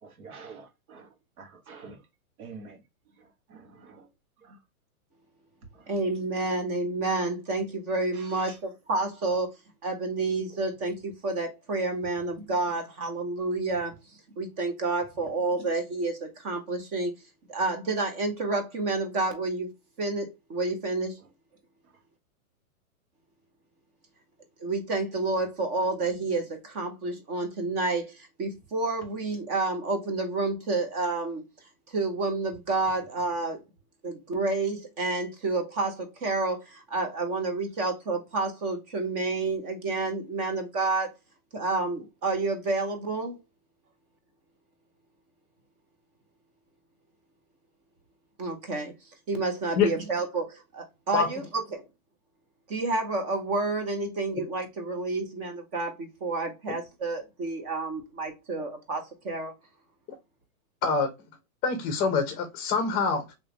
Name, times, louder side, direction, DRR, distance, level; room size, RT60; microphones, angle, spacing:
voice 1, 0.0-2.0 2.4-4.1 4.4-4.6 5.7-5.9 8.1-8.6 21.2-21.3 21.8-21.9, right 4 dB, 80° right, 1.4 m, -48 dB
voice 2, 5.9-9.5 9.8-13.9 14.4-17.1 17.5-19.7 20.0-21.2 24.6-31.4 31.9-33.6 34.0-41.1 41.5-43.4 48.4-48.9 49.3-51.8 52.7-59.5, right 3 dB, 20° right, 0.5 m, -29 dB
voice 3, 61.6-63.3, left 5 dB, 20° left, 0.7 m, -25 dB
3.4 x 3.0 x 2.8 m
hypercardioid pair, 150°, 43 cm